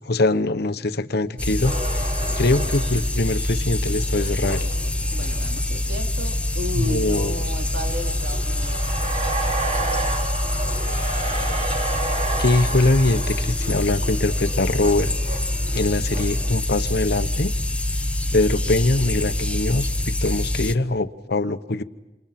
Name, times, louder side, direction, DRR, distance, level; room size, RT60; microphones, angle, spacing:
voice 1, 0.0-2.1 2.4-4.7 6.7-7.4 12.4-15.1 15.7-17.5 18.3-21.8, left 2 dB, 65° left, 12 dB, 1.0 m, -22 dB
sound 1, 1.4-20.8, left 1 dB, 5° left, 0.9 m, -25 dB
sound 2, 1.6-5.7 6.2-6.3 7.2-16.5, right 3 dB, 40° right, 2.7 m, -32 dB
voice 2, 2.2-2.7 5.1-8.8, equal, 90° right, 2 dB, 3.5 m, -34 dB
28.5 x 28.0 x 5.9 m, 1.0 s
head